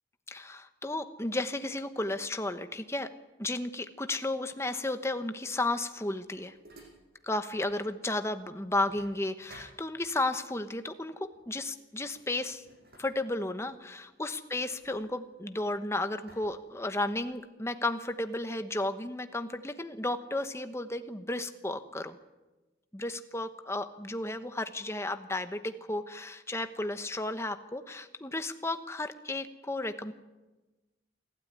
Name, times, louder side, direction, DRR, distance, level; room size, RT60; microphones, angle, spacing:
voice 1, 0.3-3.1 3.4-6.5 7.2-12.6 13.0-22.2 22.9-30.1, left 2 dB, 15° left, 9 dB, 1.1 m, -33 dB
sound 1, 5.7-7.8 8.1-10.4 11.3-11.5 11.9-15.7 16.3-17.4, right 1 dB, 55° right, 6.9 m, -58 dB
27.0 x 12.5 x 9.5 m, 1.1 s
head